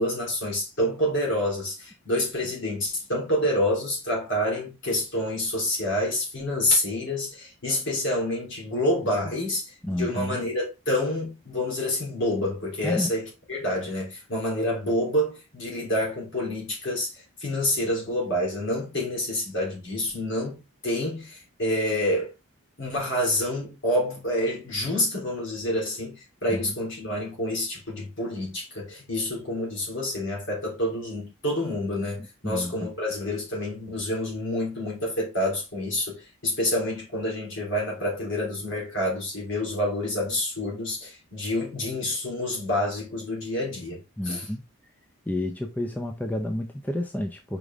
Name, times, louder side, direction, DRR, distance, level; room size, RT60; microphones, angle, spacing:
voice 1, 0.0-22.3 22.8-44.0 44.2-44.4, left 1 dB, 55° left, 3.4 m, -28 dB
voice 2, 9.8-10.4 12.8-13.1 26.5-26.7 32.2-32.9 44.2-44.6 45.3-47.6, left 1 dB, 10° left, 0.5 m, -30 dB
5.2 x 5.0 x 3.6 m
head